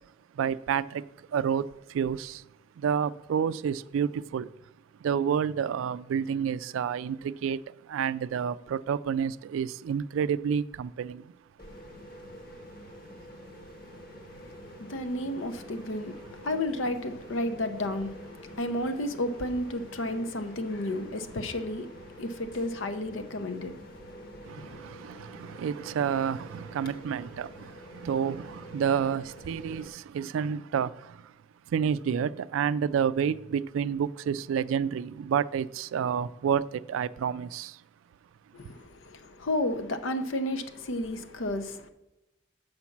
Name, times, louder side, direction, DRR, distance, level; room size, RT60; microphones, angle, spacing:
voice 1, 0.3-2.4 2.8-4.5 5.0-11.3 24.4-31.3 31.7-37.8, right 7 dB, 85° right, 0.3 m, -29 dB
sound 1, 11.6-29.9, equal, 50° left, 1.1 m, -47 dB
voice 2, 14.8-24.8 38.5-41.9, left 1 dB, 80° left, 0.7 m, -32 dB
7.1 x 5.1 x 5.8 m
head